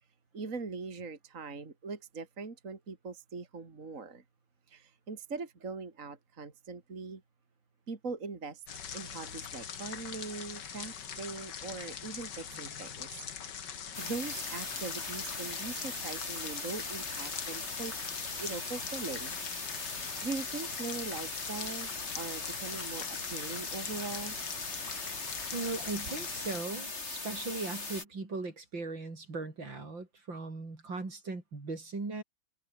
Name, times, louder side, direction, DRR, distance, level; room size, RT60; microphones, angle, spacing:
voice 1, 0.3-4.2 4.7-7.2 7.9-8.6 8.9-13.1 13.8-18.0 18.4-19.3 20.2-21.9 22.1-24.4, right 4 dB, 40° right, 2.8 m, -41 dB
sound 1, 8.7-26.6, left 8 dB, 60° left, 2.2 m, -42 dB
sound 2, 13.9-28.0, left 3 dB, 35° left, 3.8 m, -40 dB
voice 2, 25.5-32.2, right 3 dB, 70° right, 5.5 m, -38 dB
omnidirectional pair, 2.2 m